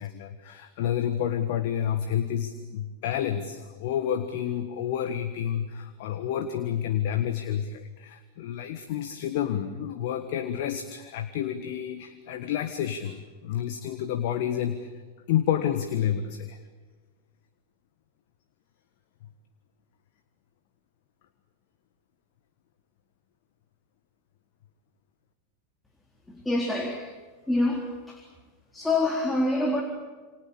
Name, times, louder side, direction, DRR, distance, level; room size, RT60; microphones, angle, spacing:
voice 1, 0.0-14.9 15.3-16.6, left 10 dB, 50° left, 9 dB, 1.5 m, -29 dB
voice 2, 26.3-27.0 27.5-28.2 28.7-29.8, left 2 dB, 5° left, 0 dB, 3.7 m, -26 dB
28.0 x 26.0 x 7.2 m, 1.4 s
figure-of-eight pair, 90°, 0 cm